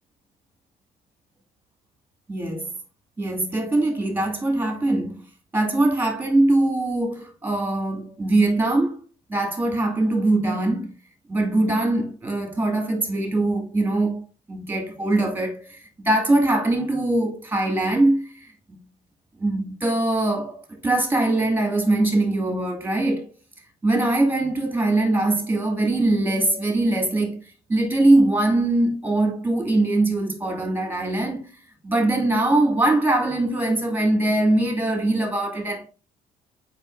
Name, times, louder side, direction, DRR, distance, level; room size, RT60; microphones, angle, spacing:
voice 1, 2.3-2.7 3.2-5.2 5.5-9.0 9.3-10.9 11.3-18.8 19.4-23.3 23.8-27.4 27.7-31.4 31.8-35.9, right 2 dB, 10° right, 2.4 m, -22 dB
7.2 x 5.4 x 2.6 m
cardioid pair, 110°, 17 cm